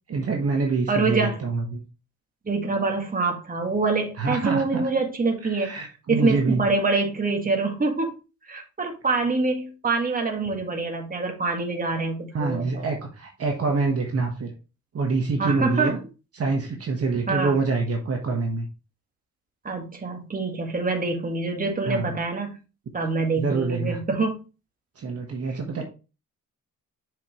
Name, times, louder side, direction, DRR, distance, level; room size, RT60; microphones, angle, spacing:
voice 1, 0.1-1.8 4.2-4.9 5.4-6.6 12.3-14.5 14.9-16.0 16.3-18.7 21.9-22.1 23.3-24.0 25.0-25.8, right 4 dB, 50° right, 2 dB, 1.5 m, -26 dB
voice 2, 0.9-1.4 2.5-5.7 6.1-8.1 8.5-12.9 15.4-15.9 17.3-17.6 19.6-22.6 22.9-24.4, right 3 dB, 25° right, 2 dB, 1.8 m, -25 dB
7.0 x 5.3 x 3.2 m, 0.31 s
cardioid pair, 100°, 32 cm